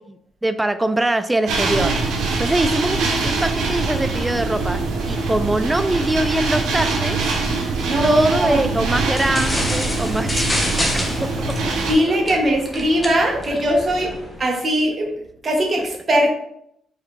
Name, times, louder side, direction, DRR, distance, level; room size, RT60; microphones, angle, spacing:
voice 1, 0.1-4.8 5.1-7.2 8.0-10.6 11.2-11.3 12.1-12.4 15.8-15.9, right 1 dB, 15° right, 11 dB, 0.4 m, -23 dB
sound 1, 1.5-11.9, right 3 dB, 80° right, 1.0 m, -23 dB
voice 2, 7.9-8.6 11.9-14.1 14.4-15.1 15.4-16.3, equal, 35° right, 0 dB, 1.3 m, -19 dB
sound 2, 9.1-14.4, left 1 dB, 15° left, 1.0 m, -27 dB
4.7 x 3.2 x 3.2 m, 0.75 s
cardioid pair, 90°, 0 cm